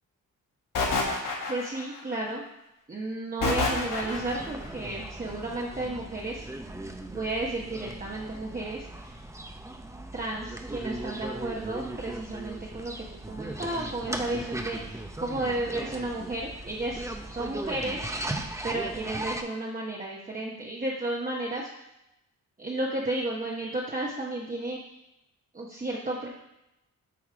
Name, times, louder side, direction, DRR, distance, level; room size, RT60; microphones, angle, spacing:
sound 1, 0.7-2.0 3.4-4.5, left 3 dB, 65° left, 1.5 m, -28 dB
voice 1, 1.5-2.4 2.9-6.5 7.1-9.2 10.1-18.1 18.6-21.7 22.6-24.8 25.5-26.3, right 2 dB, 25° right, -3 dB, 1.0 m, -33 dB
sound 2, 3.6-19.4, right 1 dB, 10° right, 0.7 m, -38 dB
8.6 x 3.0 x 4.9 m, 0.90 s
cardioid pair, 65°, 35 cm